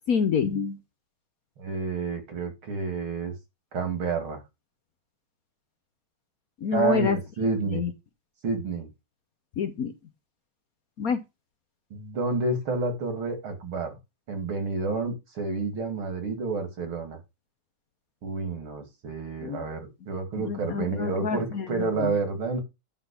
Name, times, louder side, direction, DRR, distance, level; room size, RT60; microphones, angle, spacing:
voice 1, 0.1-0.8 6.6-7.2 7.7-7.9 9.6-9.9 11.0-11.2 19.4-19.6 20.4-21.7 22.0-22.1, left 6 dB, 55° left, 9 dB, 1.2 m, -27 dB
voice 2, 1.6-3.3 3.7-4.4 6.7-7.9 8.4-8.9 11.9-13.9 14.3-17.2 18.2-22.6, right 4 dB, 80° right, 6 dB, 3.3 m, -29 dB
11.0 x 4.0 x 6.9 m, 0.24 s
omnidirectional pair, 2.2 m